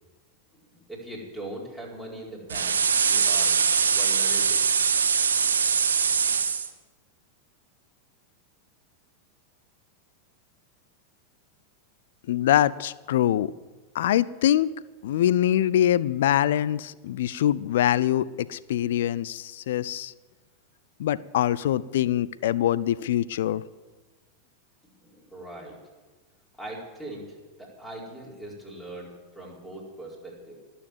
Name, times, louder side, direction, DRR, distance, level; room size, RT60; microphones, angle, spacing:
voice 1, 0.5-3.6 3.9-4.6 25.0-25.8 26.6-30.5, right 1 dB, 5° left, -3 dB, 4.7 m, -41 dB
sound 1, 2.5-6.7, right 6 dB, 70° right, 1.2 m, -22 dB
voice 2, 12.3-13.5 13.9-14.7 15.0-20.1 21.0-23.6, left 11 dB, 55° left, 19 dB, 0.5 m, -24 dB
18.5 x 7.1 x 9.4 m, 1.2 s
figure-of-eight pair, 90°, 0 cm